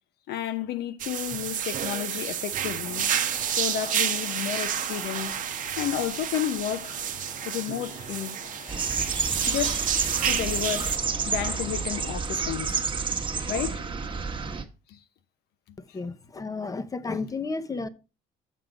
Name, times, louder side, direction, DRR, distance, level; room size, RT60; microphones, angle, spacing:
voice 1, 0.3-3.1 3.5-5.4 5.8-7.0 7.4-8.4 9.5-9.9 10.2-10.9 11.3-12.8 13.5-13.9 14.9-15.0, left 11 dB, 75° left, 0.8 m, -31 dB
sound 1, 1.0-11.0, right 9 dB, 50° right, 0.8 m, -30 dB
sound 2, 2.8-12.2, left 4 dB, 40° left, 1.4 m, -46 dB
sound 3, 8.7-14.6, right 5 dB, 30° right, 1.1 m, -29 dB
voice 2, 15.8-17.9, left 3 dB, 20° left, 0.8 m, -32 dB
7.4 x 5.8 x 5.1 m
cardioid pair, 110°, 17 cm